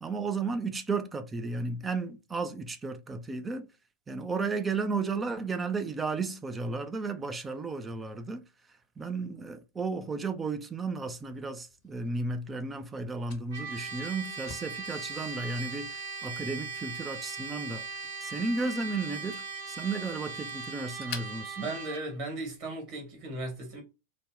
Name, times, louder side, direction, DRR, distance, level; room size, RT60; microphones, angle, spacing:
voice 1, 0.0-3.7 4.1-8.5 9.0-17.9 18.2-21.7, right 4 dB, 15° right, 0.4 m, -34 dB
Fire, 11.1-22.6, left 7 dB, 45° left, 0.7 m, -52 dB
Trumpet, 13.5-22.1, right 4 dB, 60° right, 0.9 m, -39 dB
voice 2, 21.6-23.8, right 2 dB, 40° right, 1.7 m, -36 dB
3.4 x 2.1 x 3.7 m
figure-of-eight pair, 90°, 0 cm